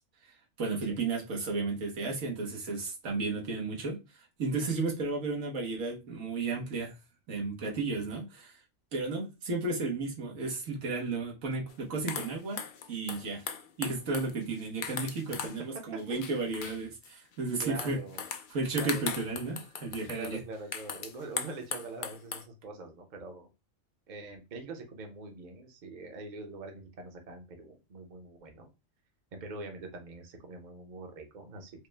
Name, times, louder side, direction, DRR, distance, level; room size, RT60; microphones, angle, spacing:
voice 1, 0.2-4.0 4.4-6.9 7.3-8.5 8.9-12.6 12.9-13.4 13.8-18.0 18.5-20.4, right 3 dB, 90° right, 1.4 m, -33 dB
sound 1, 11.7-11.8 12.1-15.6 16.0-17.1 17.6-22.4, left 7 dB, 65° left, 0.5 m, -39 dB
voice 2, 16.1-16.4 17.6-18.3 18.8-19.1 20.1-23.5 24.1-28.7 29.3-31.9, right 3 dB, 45° right, 0.8 m, -44 dB
4.8 x 2.1 x 3.3 m
omnidirectional pair, 1.3 m